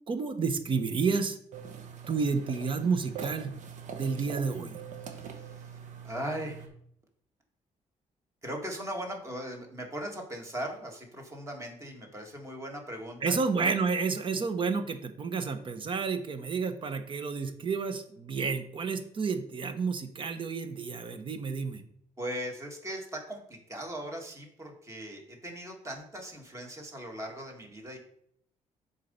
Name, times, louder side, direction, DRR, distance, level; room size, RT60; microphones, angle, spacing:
voice 1, 0.1-1.4 2.1-3.5 3.9-4.8 13.2-21.8, right 5 dB, 40° right, 9 dB, 0.8 m, -30 dB
sound 1, 1.5-6.7, right 6 dB, 70° right, 1.0 m, -43 dB
voice 2, 5.0-5.8 6.0-6.7 8.4-13.4 22.2-28.0, right 1 dB, 20° right, 1 dB, 1.7 m, -39 dB
7.5 x 4.0 x 5.4 m, 0.67 s
cardioid pair, 130°, 13 cm